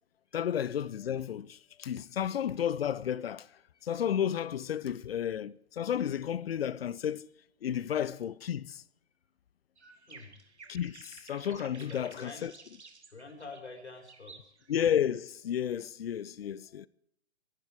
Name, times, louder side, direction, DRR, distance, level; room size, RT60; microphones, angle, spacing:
voice 1, 0.3-3.5 3.8-7.3 7.6-8.8 10.7-12.5 14.7-16.9, left 9 dB, 60° left, 0.8 m, -32 dB
sound 1, 9.8-14.8, right 4 dB, 80° right, 3.0 m, -54 dB
voice 2, 10.1-10.4 11.8-12.5 13.1-14.5, left 3 dB, 80° left, 4.3 m, -47 dB
24.5 x 11.5 x 4.7 m
figure-of-eight pair, 125°, 34 cm